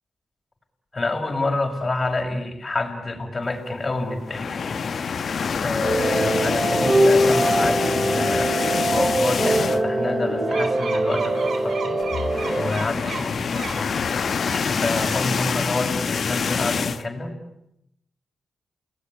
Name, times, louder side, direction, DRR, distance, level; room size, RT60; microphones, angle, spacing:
voice 1, 0.9-4.9 5.6-11.8 12.5-14.1 14.7-17.4, left 2 dB, 40° left, 3 dB, 6.2 m, -28 dB
sound 1, 4.2-10.0 10.4-10.6 10.8-10.9 12.0-17.0, left 6 dB, 65° left, 1.0 m, -26 dB
sound 2, 5.8-12.7, right 1 dB, 35° right, 5.7 m, -22 dB
sound 3, 10.5-13.9 14.3-15.5, right 5 dB, 70° right, 3.8 m, -35 dB
30.0 x 20.0 x 8.9 m, 0.80 s
supercardioid pair, 45°, 0 cm